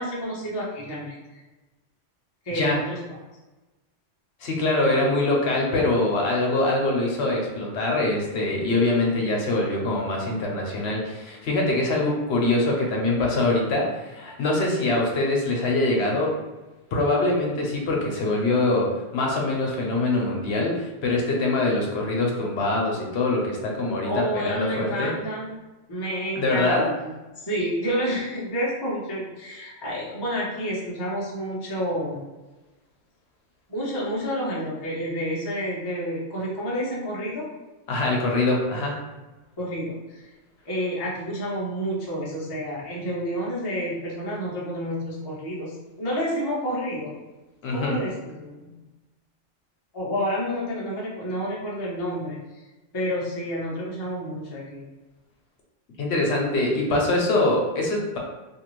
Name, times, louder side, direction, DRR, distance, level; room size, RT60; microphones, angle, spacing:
voice 1, 0.0-1.4 2.4-3.0 24.0-25.6 25.9-32.2 33.7-37.5 39.6-40.3 40.6-47.1 47.7-48.7 49.9-52.4 52.9-54.8, equal, 25° left, -6 dB, 0.6 m, -29 dB
voice 2, 4.4-16.3 16.9-25.1 26.4-26.9 37.9-39.0 47.6-48.0 56.0-58.2, left 2 dB, 65° left, -1 dB, 0.9 m, -24 dB
2.7 x 2.5 x 3.0 m, 1.1 s
omnidirectional pair, 1.3 m